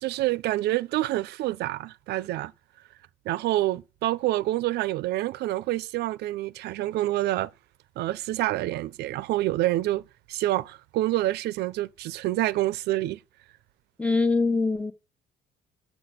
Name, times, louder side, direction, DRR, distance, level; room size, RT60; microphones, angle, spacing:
voice 1, 0.0-2.5 3.3-7.5 8.0-13.2, right 16 dB, 80° right, 0.6 m, -27 dB
voice 2, 14.0-14.9, left 3 dB, 5° left, 1.0 m, -23 dB
9.0 x 6.0 x 8.1 m
cardioid pair, 110°, 17 cm